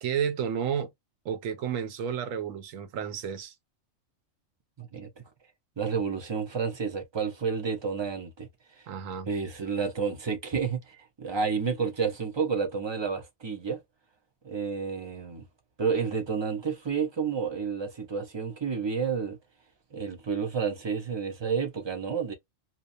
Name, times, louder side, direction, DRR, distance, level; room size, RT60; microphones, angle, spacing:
voice 1, 0.0-0.9 1.2-3.5 8.9-9.3, right 8 dB, 85° right, 1.1 m, -31 dB
voice 2, 4.8-5.1 5.8-8.5 9.3-13.8 14.4-15.4 15.8-19.4 19.9-22.3, right 5 dB, 40° right, 0.4 m, -30 dB
2.8 x 2.0 x 2.5 m
omnidirectional pair, 1.3 m